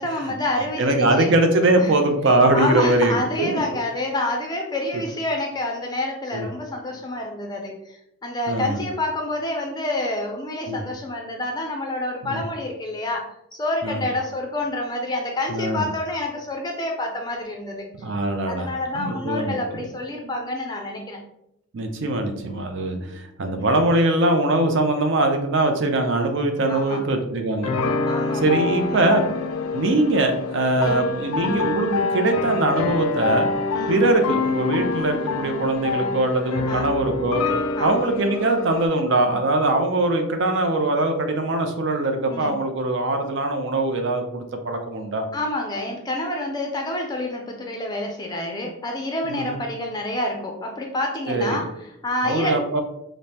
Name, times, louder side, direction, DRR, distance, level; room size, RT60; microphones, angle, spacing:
voice 1, 0.0-1.3 1.8-2.0 2.5-17.9 18.5-21.2 23.0-23.2 23.6-23.7 26.7-27.0 28.1-29.0 30.8-31.0 33.7-34.0 36.7-36.9 37.8-38.0 42.3-42.5 45.3-52.6, left 1 dB, 20° left, 1 dB, 0.4 m, -28 dB
voice 2, 0.8-3.6 4.9-5.0 6.3-6.5 8.5-8.8 10.7-10.8 12.2-12.4 13.8-14.0 15.5-15.8 18.0-18.7 18.9-19.8 20.2-20.3 21.7-27.7 28.4-29.2 29.7-33.5 33.9-37.4 37.8-45.2 49.3-49.6 51.3-51.6 52.2-52.8, right 2 dB, 55° right, 5 dB, 0.5 m, -22 dB
sound 1, 27.6-38.9, left 4 dB, 85° left, 0.4 m, -26 dB
5.1 x 2.1 x 2.8 m, 0.79 s
head